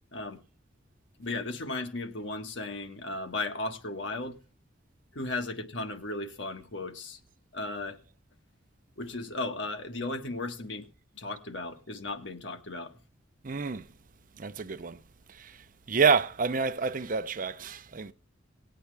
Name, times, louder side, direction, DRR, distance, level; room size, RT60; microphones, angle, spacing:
voice 1, 1.2-4.4 5.1-7.2 7.5-8.0 9.0-10.9 11.1-12.9, left 2 dB, 70° left, 1.6 m, -35 dB
voice 2, 13.4-13.9 14.4-15.0 15.3-15.6 15.9-18.1, right 5 dB, 45° right, 0.6 m, -28 dB
19.0 x 8.5 x 3.3 m
head